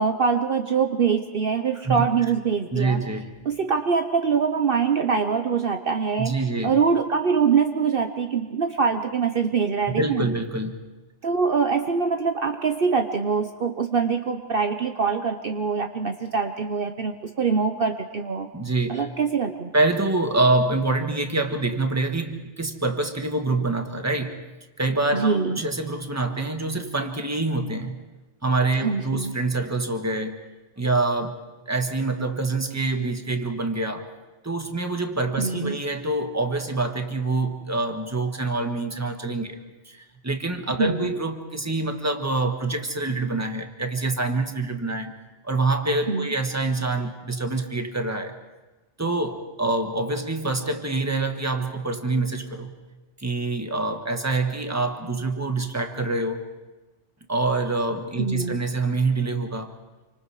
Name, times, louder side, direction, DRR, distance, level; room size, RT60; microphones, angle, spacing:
voice 1, 0.0-3.0 3.4-10.3 11.2-18.5 18.9-19.7 25.1-25.6 28.8-29.4 35.4-35.8 40.8-41.1 46.1-46.3 58.2-58.6, right 5 dB, 50° right, 6 dB, 1.1 m, -24 dB
voice 2, 2.7-3.3 6.2-6.7 10.0-10.8 18.5-19.1 19.7-24.4 24.8-28.0 28.4-30.4 30.8-31.3 31.7-34.1 34.4-39.6 39.8-45.1 45.4-48.3 49.0-52.7 53.2-56.4 57.3-59.7, right 2 dB, 15° right, 5 dB, 1.6 m, -26 dB
28.0 x 25.5 x 4.9 m, 1.1 s
omnidirectional pair, 1.2 m